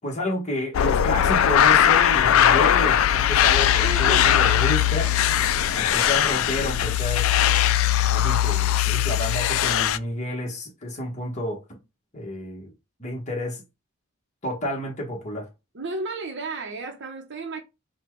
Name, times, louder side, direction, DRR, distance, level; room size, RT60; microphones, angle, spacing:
voice 1, 0.0-5.1 5.7-7.3 8.0-11.8 12.1-12.7 13.0-13.6 14.4-15.5, left 1 dB, 35° left, 1.3 m, -30 dB
sound 1, 0.7-10.0, left 10 dB, 65° left, 0.3 m, -20 dB
voice 2, 3.8-4.3 15.7-17.6, right 3 dB, 55° right, 0.8 m, -32 dB
4.2 x 2.3 x 4.5 m
head